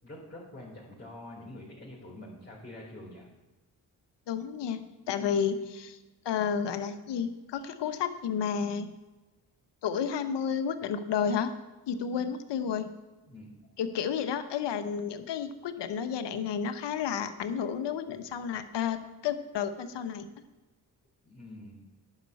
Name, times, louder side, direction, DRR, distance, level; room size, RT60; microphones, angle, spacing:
voice 1, 0.0-3.3 13.3-13.5 21.2-21.8, left 1 dB, 25° left, -6 dB, 4.4 m, -46 dB
voice 2, 4.3-6.0 6.2-8.9 9.8-11.5 11.9-12.9 13.8-20.3, left 7 dB, 75° left, 10 dB, 1.0 m, -31 dB
10.5 x 5.7 x 8.2 m, 1.1 s
supercardioid pair, 50°, 43 cm